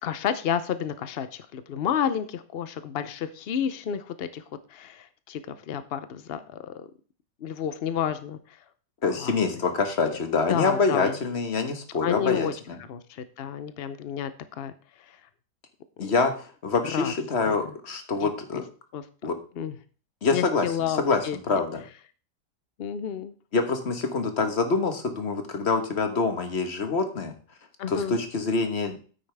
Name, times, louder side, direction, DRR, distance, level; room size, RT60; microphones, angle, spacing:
voice 1, 0.0-4.4 4.7-6.9 7.4-8.6 9.2-9.6 10.1-10.2 10.5-11.2 12.0-12.5 12.9-14.3 14.6-14.7 15.1-15.2 16.9-17.1 17.5-17.6 18.2-18.6 18.9-19.0 19.6-19.8 20.3-21.4 22.8-23.3 27.8-28.2, left 8 dB, 80° left, 12 dB, 0.5 m, -30 dB
voice 2, 9.0-12.8 16.0-18.6 19.2-19.4 20.2-21.2 21.5-21.8 23.5-27.3 27.9-29.0, left 4 dB, 40° left, 7 dB, 1.5 m, -26 dB
9.5 x 8.9 x 3.4 m, 0.39 s
omnidirectional pair, 1.9 m